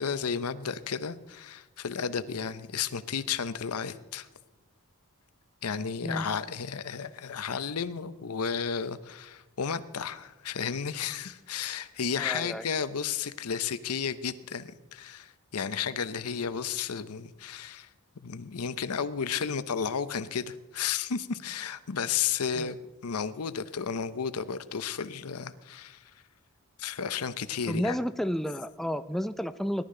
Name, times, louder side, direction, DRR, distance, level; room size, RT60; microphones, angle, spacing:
voice 1, 0.0-4.3 5.6-17.9 18.2-22.8 23.0-26.0 26.8-28.0, left 6 dB, 75° left, 14 dB, 0.7 m, -33 dB
voice 2, 12.2-12.6 22.6-22.7 27.7-29.8, equal, ahead, 11 dB, 0.3 m, -31 dB
20.0 x 11.5 x 3.8 m, 1.1 s
head